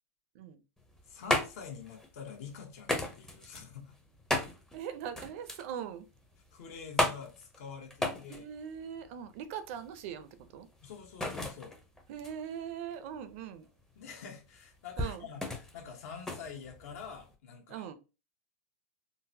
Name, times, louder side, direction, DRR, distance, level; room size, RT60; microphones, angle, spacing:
sound 1, 0.8-17.3, left 1 dB, 5° left, 0.6 m, -37 dB
voice 1, 1.1-4.0 6.5-8.5 10.8-11.7 13.9-17.9, left 6 dB, 65° left, 1.0 m, -46 dB
voice 2, 4.7-6.1 8.0-10.7 12.1-13.7 15.0-15.3 17.7-17.9, right 8 dB, 55° right, 0.5 m, -41 dB
3.7 x 2.1 x 2.7 m
supercardioid pair, 140°, 9 cm